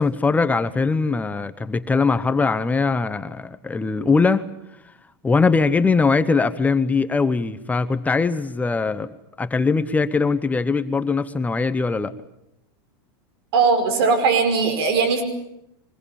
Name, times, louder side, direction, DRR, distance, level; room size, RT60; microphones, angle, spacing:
voice 1, 0.0-4.5 5.2-12.1, left 4 dB, 10° left, 12 dB, 0.9 m, -21 dB
voice 2, 13.5-15.2, right 5 dB, 75° right, 7 dB, 5.3 m, -19 dB
23.5 x 21.0 x 8.8 m, 0.82 s
supercardioid pair, 140°, 13 cm